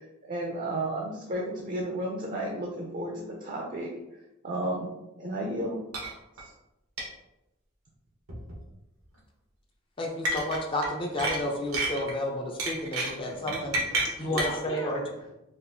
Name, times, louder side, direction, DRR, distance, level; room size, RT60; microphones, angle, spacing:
voice 1, 0.0-3.9 4.4-4.9 5.2-5.8 6.4-6.5, right 1 dB, 40° right, -1 dB, 0.5 m, -33 dB
sound 1, 5.9-6.1 6.4-6.5 7.0-7.1 8.3-8.6 10.3-10.9 11.2-12.1 12.6-14.6, right 2 dB, 85° right, 0.9 m, -30 dB
voice 2, 10.0-13.7 14.2-15.0, left 1 dB, 25° left, 1 dB, 0.4 m, -31 dB
voice 3, 13.2-15.3, left 1 dB, 75° left, -3 dB, 1.0 m, -39 dB
4.2 x 2.4 x 2.6 m, 0.92 s
head